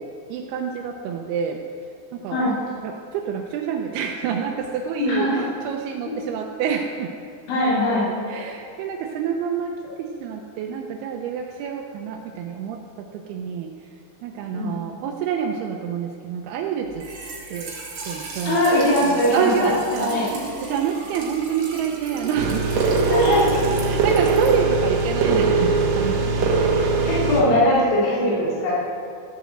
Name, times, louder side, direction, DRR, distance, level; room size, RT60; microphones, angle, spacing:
voice 1, 0.0-1.6 2.1-7.1 8.3-13.7 14.2-17.1 17.5-18.6 19.0-20.1 20.6-23.5 23.8-26.8, right 7 dB, 80° right, 2 dB, 2.4 m, -28 dB
voice 2, 5.0-5.5 6.1-6.2 7.5-8.1 14.5-14.8 18.5-19.7 20.0-20.2 23.0-23.5 27.1-28.7, left 1 dB, 90° left, -7 dB, 5.5 m, -20 dB
Trickle dribble / Fill (with liquid), 16.9-25.6, right 2 dB, 45° right, 2.8 m, -34 dB
sound 1, 22.3-27.4, right 4 dB, 65° right, 1.7 m, -21 dB
14.0 x 8.1 x 7.8 m, 2.5 s
omnidirectional pair, 5.1 m